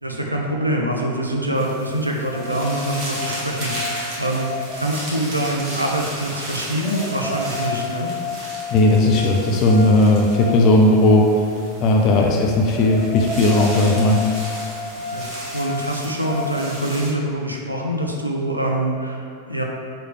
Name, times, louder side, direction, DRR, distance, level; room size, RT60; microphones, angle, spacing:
voice 1, 0.0-4.5 4.8-8.1 12.0-12.3 15.1-19.6, right 1 dB, 85° right, 0 dB, 0.4 m, -25 dB
sound 1, 1.6-17.1, right 1 dB, 35° right, 1.1 m, -35 dB
sound 2, 2.3-16.8, left 4 dB, 10° left, 1.3 m, -32 dB
voice 2, 8.7-11.3 11.8-14.2, left 2 dB, 40° left, 0 dB, 0.3 m, -16 dB
3.1 x 3.1 x 4.5 m, 2.3 s
figure-of-eight pair, 90°, 0 cm